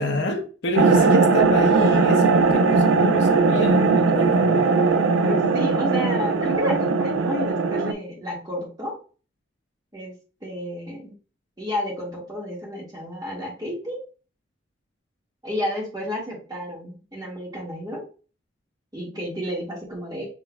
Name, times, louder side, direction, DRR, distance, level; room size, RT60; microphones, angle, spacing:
voice 1, 0.0-4.7, left 1 dB, 60° left, 0.7 m, -28 dB
sound 1, 0.8-7.9, right 4 dB, 80° right, 0.4 m, -19 dB
voice 2, 0.9-1.4 5.2-8.9 9.9-10.1 10.4-11.1 11.6-14.0 15.4-18.0 18.9-20.3, equal, 20° right, 1.6 m, -31 dB
6.0 x 3.1 x 2.3 m
head